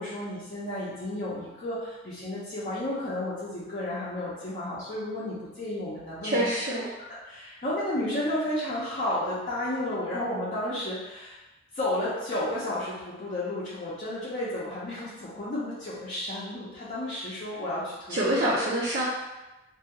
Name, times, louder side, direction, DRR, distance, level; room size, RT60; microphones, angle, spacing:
voice 1, 0.0-6.5 7.2-11.4 11.7-18.2, left 1 dB, 40° left, -10 dB, 0.6 m, -32 dB
voice 2, 6.2-6.9 18.1-19.1, right 1 dB, 50° right, -8 dB, 0.5 m, -26 dB
2.7 x 2.3 x 2.8 m, 1.1 s
head